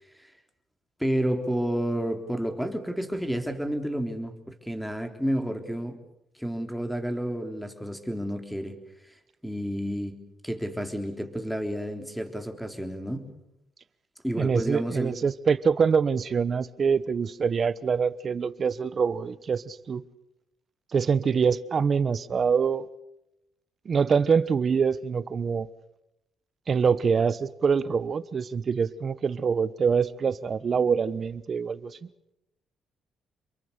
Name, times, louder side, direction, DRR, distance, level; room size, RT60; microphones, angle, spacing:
voice 1, 1.0-6.0 6.4-8.8 9.4-10.2 10.4-13.3 14.2-15.1, equal, ahead, 3.5 m, -30 dB
voice 2, 14.3-20.0 20.9-22.9 23.8-25.7 26.7-32.0, right 6 dB, 45° right, 1.1 m, -25 dB
28.0 x 23.0 x 6.8 m
cardioid pair, 90°, 0 cm